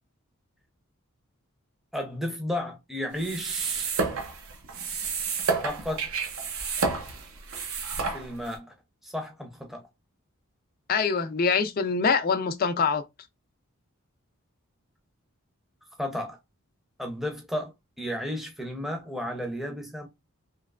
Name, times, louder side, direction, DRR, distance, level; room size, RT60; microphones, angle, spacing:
voice 1, 1.9-4.0 5.6-6.1 8.1-8.7 9.0-9.9 16.0-16.4 17.0-20.1, left 1 dB, ahead, 0.6 m, -33 dB
sound 1, 3.1-8.6, right 4 dB, 75° right, 0.7 m, -30 dB
voice 2, 10.9-13.0, left 5 dB, 40° left, 0.4 m, -24 dB
3.1 x 2.9 x 2.3 m
head